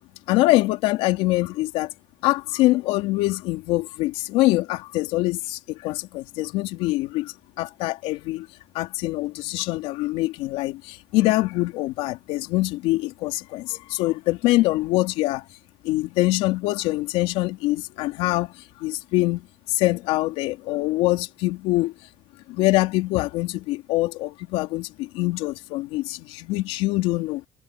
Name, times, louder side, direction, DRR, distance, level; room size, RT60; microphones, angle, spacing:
voice 1, 0.3-1.9 2.2-8.5 8.7-15.4 15.8-21.9 22.5-27.4, left 18 dB, 80° left, 3.5 m, -24 dB
supercardioid pair, 90°, 10 cm